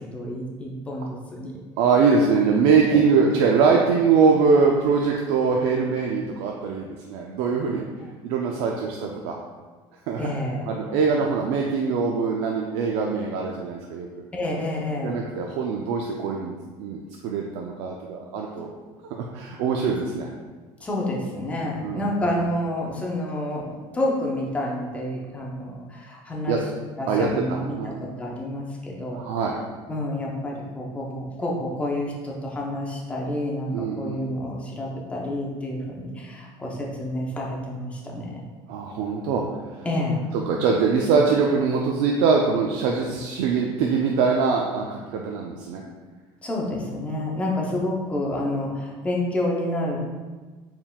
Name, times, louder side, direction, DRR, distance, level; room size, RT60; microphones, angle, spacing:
voice 1, 0.0-1.6 2.9-3.0 10.2-10.6 14.3-15.1 20.8-23.7 23.9-26.6 27.0-27.9 28.2-29.2 29.9-38.5 39.8-40.2 46.4-50.0, left 1 dB, 10° left, -2 dB, 0.6 m, -29 dB
voice 2, 1.8-9.4 10.1-10.2 10.7-14.1 15.0-16.5 16.8-18.7 19.2-20.3 21.8-22.1 26.5-26.6 27.1-28.0 29.1-29.6 33.7-34.2 38.7-39.4 39.7-39.9 40.3-45.8, right 5 dB, 75° right, 0 dB, 0.4 m, -23 dB
4.4 x 3.6 x 2.3 m, 1.4 s
cardioid pair, 165°, 10 cm